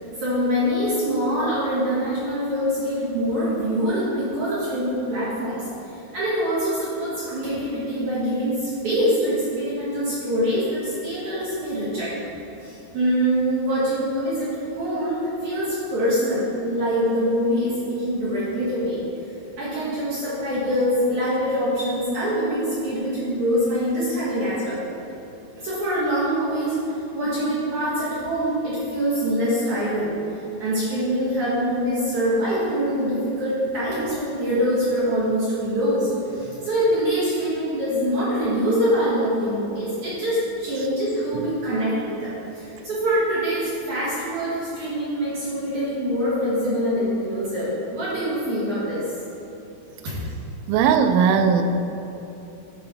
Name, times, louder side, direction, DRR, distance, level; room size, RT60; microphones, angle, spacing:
voice 1, 0.1-5.6 6.1-12.1 12.6-19.0 19.6-24.8 25.6-30.2 30.6-49.0 50.0-50.1, equal, 50° right, -11 dB, 2.5 m, -24 dB
voice 2, 50.7-51.6, right 7 dB, 85° right, 7 dB, 3.1 m, -18 dB
12.0 x 4.7 x 4.2 m, 2.9 s
omnidirectional pair, 5.5 m